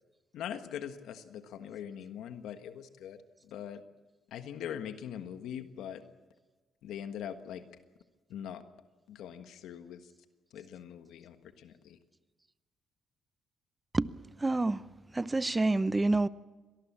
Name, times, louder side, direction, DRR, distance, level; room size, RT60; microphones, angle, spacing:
voice 1, 0.3-3.2 3.4-3.8 4.3-6.0 6.8-7.6 8.3-8.6 9.1-10.0 10.5-12.0, left 9 dB, 80° left, 1.4 m, -42 dB
voice 2, 14.4-14.8 15.1-16.3, right 2 dB, 20° right, 0.8 m, -27 dB
25.0 x 19.0 x 7.4 m
cardioid pair, 90°, 0 cm